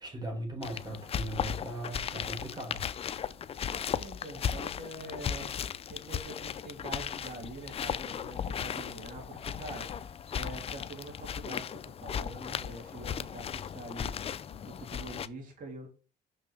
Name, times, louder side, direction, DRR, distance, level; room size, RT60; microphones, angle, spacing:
voice 1, 0.0-2.8, right 1 dB, 25° right, 1 dB, 4.2 m, -39 dB
sound 1, 0.6-15.3, left 8 dB, 35° left, 0.5 m, -36 dB
voice 2, 3.9-5.5 5.9-10.0 10.3-15.9, right 1 dB, 50° right, 1 dB, 3.1 m, -45 dB
6.1 x 6.0 x 3.4 m, 0.34 s
cardioid pair, 110°, 17 cm